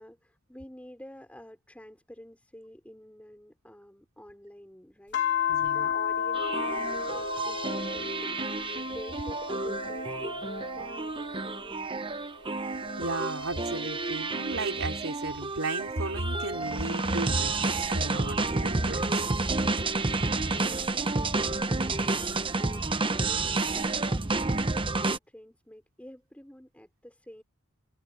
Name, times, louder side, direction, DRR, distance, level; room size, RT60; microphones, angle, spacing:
voice 1, 0.0-12.2 19.6-27.4, equal, 5° left, 5.8 m, -49 dB
sound 1, 5.1-11.9 12.3-15.2 15.8-18.6 19.3-21.8 23.1-24.2, left 7 dB, 55° left, 3.8 m, -36 dB
voice 2, 5.5-5.9 13.0-19.2 20.3-20.4, right 2 dB, 65° right, 4.0 m, -34 dB
sound 2, 6.3-25.2, right 3 dB, 25° right, 0.9 m, -30 dB
head